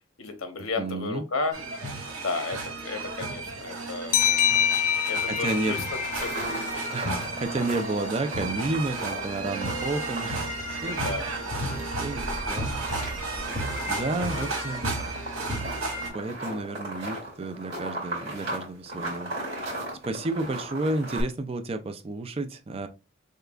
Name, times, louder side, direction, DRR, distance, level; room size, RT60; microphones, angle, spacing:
voice 1, 0.2-1.5 2.1-4.2 5.1-5.8 6.2-6.8 10.9-11.3 13.7-14.5 14.8-15.0, left 3 dB, 90° left, 1.0 m, -33 dB
voice 2, 0.8-1.2 5.2-5.8 6.9-10.4 10.7-11.5 11.8-12.7 13.0-13.4 13.9-14.8 16.1-19.3 19.6-19.8 20.0-22.9, right 2 dB, 30° right, 0.4 m, -31 dB
sound 1, 1.5-16.1, right 2 dB, 90° right, 1.9 m, -33 dB
sound 2, 4.1-7.5, left 9 dB, 40° left, 0.4 m, -26 dB
sound 3, 5.9-21.2, right 1 dB, 50° right, 2.3 m, -37 dB
6.5 x 2.3 x 2.4 m
head